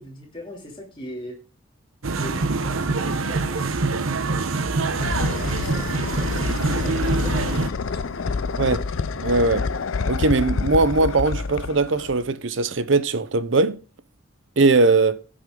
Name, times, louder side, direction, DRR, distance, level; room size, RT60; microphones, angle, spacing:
voice 1, 0.0-1.3 2.2-3.6 4.7-8.4, left 1 dB, 25° left, 3.0 m, -40 dB
sound 1, 2.0-7.7, right 3 dB, 85° right, 1.0 m, -25 dB
sound 2, 4.4-12.3, left 4 dB, 75° left, 0.5 m, -28 dB
voice 2, 9.1-9.7 10.1-13.8 14.6-15.2, right 3 dB, 65° right, 0.8 m, -20 dB
16.0 x 6.2 x 3.8 m
head